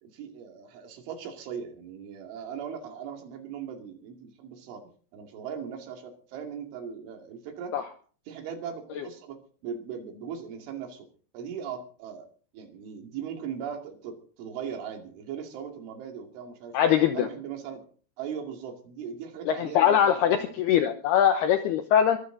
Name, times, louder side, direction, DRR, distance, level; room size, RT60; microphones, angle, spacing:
voice 1, 0.0-7.8 8.3-11.1 11.3-12.3 12.5-16.8 17.1-17.9 18.2-20.5, right 7 dB, 70° right, 4 dB, 4.8 m, -39 dB
voice 2, 16.7-17.3 19.5-22.2, left 9 dB, 80° left, 8 dB, 2.3 m, -22 dB
23.0 x 12.5 x 3.9 m, 0.42 s
omnidirectional pair, 5.8 m